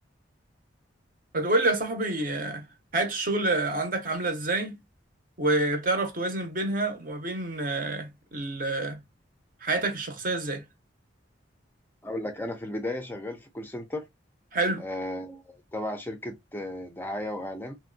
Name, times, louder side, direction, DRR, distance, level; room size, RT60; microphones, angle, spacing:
voice 1, 1.3-2.7 2.9-4.8 5.4-9.0 9.6-10.6 14.5-14.8, right 2 dB, 45° right, 0.7 m, -28 dB
voice 2, 12.0-14.1 14.8-17.8, left 1 dB, 10° left, 0.4 m, -35 dB
3.0 x 2.6 x 2.6 m
head